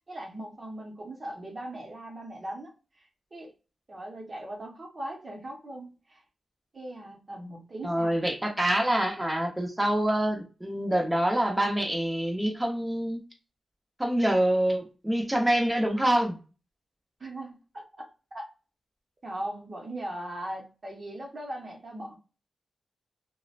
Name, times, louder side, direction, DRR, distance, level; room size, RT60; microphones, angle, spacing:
voice 1, 0.1-3.5 3.9-6.2 6.7-8.2 17.2-18.5 19.2-22.2, right 1 dB, 45° right, 0.8 m, -39 dB
voice 2, 7.8-13.2 14.0-16.4, right 1 dB, 10° right, 0.8 m, -26 dB
2.7 x 2.1 x 2.4 m
cardioid pair, 70°, 0 cm